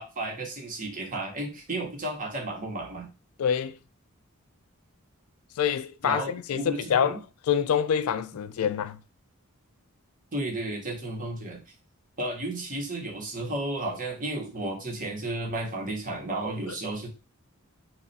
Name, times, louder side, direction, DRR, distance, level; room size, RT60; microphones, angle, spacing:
voice 1, 0.0-3.1 6.0-7.2 10.3-11.6 12.2-17.1, right 2 dB, 40° right, 1.0 m, -33 dB
voice 2, 3.4-3.8 5.6-7.2 7.5-9.0 16.7-16.8, left 8 dB, 80° left, 0.4 m, -26 dB
3.2 x 2.4 x 4.0 m
head